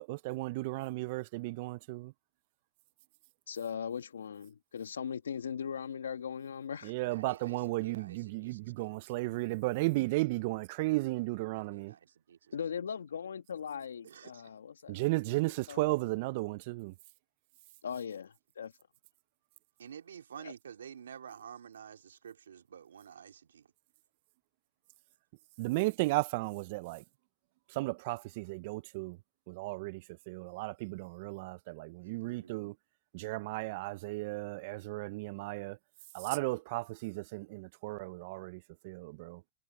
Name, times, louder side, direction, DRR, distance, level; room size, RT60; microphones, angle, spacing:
voice 1, 0.0-2.1 6.8-11.9 14.9-16.9 25.6-27.0 27.7-29.2 29.5-30.0 30.3-32.7 33.1-35.8 36.1-39.4, right 22 dB, 55° right, 0.5 m, -34 dB
voice 2, 3.5-6.9 12.5-15.0 15.7-15.9 17.8-18.7 20.4-20.5, left 7 dB, 85° left, 1.8 m, -39 dB
voice 3, 7.0-9.1 11.5-12.5 14.0-14.5 19.8-23.7 32.0-32.6, right 8 dB, 85° right, 2.7 m, -50 dB
hypercardioid pair, 105°, 0 cm